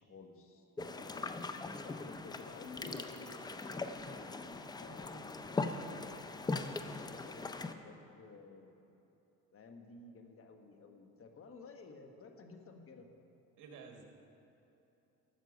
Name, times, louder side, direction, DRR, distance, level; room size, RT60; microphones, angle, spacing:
voice 1, 0.0-6.5 6.9-8.9 9.5-13.1, left 4 dB, 40° left, 4 dB, 1.3 m, -54 dB
sound 1, 0.8-7.7, left 3 dB, 10° left, 0.4 m, -40 dB
voice 2, 4.9-5.4 13.6-14.0, right 5 dB, 65° right, 2 dB, 1.8 m, -54 dB
13.0 x 7.4 x 5.2 m, 3.0 s
cardioid pair, 110°, 34 cm